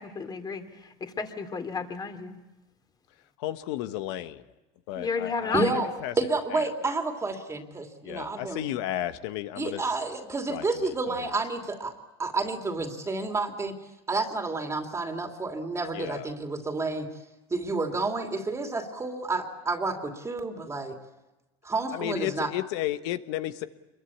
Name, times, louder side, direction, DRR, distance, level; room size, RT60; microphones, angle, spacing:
voice 1, 0.0-2.4 5.0-5.8, left 5 dB, 30° left, 7 dB, 3.2 m, -32 dB
voice 2, 3.4-4.4 4.9-6.1 6.5-6.7 8.0-9.8 10.5-11.1 15.9-16.3 21.9-23.7, left 13 dB, 80° left, 11 dB, 1.4 m, -33 dB
voice 3, 5.5-5.9 6.2-8.6 9.6-11.9 12.2-13.7 14.1-17.1 17.5-21.0 21.6-22.5, right 3 dB, 20° right, 4 dB, 2.8 m, -30 dB
26.0 x 22.5 x 8.6 m, 1.0 s
supercardioid pair, 100°, 14 cm